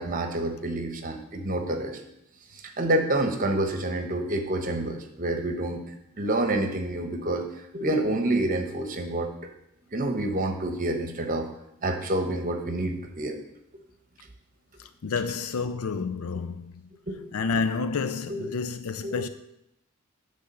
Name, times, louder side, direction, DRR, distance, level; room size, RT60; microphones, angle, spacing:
voice 1, 0.0-2.0 2.5-5.8 6.2-7.5 7.7-9.3 9.9-11.5 11.8-13.4 17.1-17.2 18.3-18.5 19.0-19.3, right 1 dB, 40° right, 1.0 m, -28 dB
voice 2, 14.8-16.7 17.3-19.3, left 4 dB, 80° left, 0.5 m, -29 dB
10.0 x 3.4 x 6.8 m
head